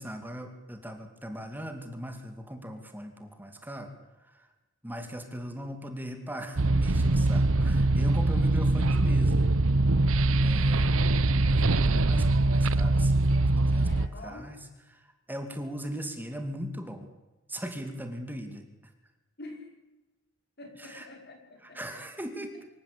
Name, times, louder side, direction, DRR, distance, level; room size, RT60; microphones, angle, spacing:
voice 1, 0.0-3.9 4.8-9.5 10.4-11.0 11.3-14.6 14.9-15.0 15.3-17.1 17.5-18.7 20.9-21.1 21.6-22.7, equal, 10° right, 6 dB, 2.6 m, -39 dB
sound 1, 6.6-14.1, right 2 dB, 75° right, 0.9 m, -23 dB
voice 2, 8.1-8.5 13.7-14.5 19.4-19.7 20.6-22.0, left 2 dB, 55° left, 3 dB, 5.4 m, -47 dB
25.5 x 14.5 x 8.6 m, 1.1 s
head